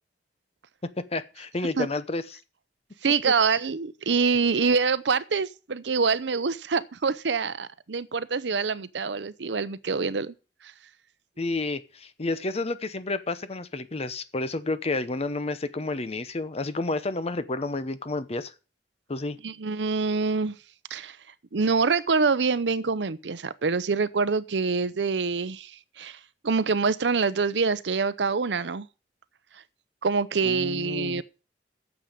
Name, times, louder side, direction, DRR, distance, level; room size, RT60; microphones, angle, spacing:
voice 1, 1.0-2.2 11.4-18.5 19.1-19.4 30.4-31.2, left 2 dB, 35° left, 0.8 m, -30 dB
voice 2, 3.0-10.3 10.6-10.7 19.4-20.5 20.9-21.2 21.5-28.9 30.0-31.2, right 4 dB, 80° right, 0.7 m, -25 dB
9.3 x 7.2 x 8.8 m
head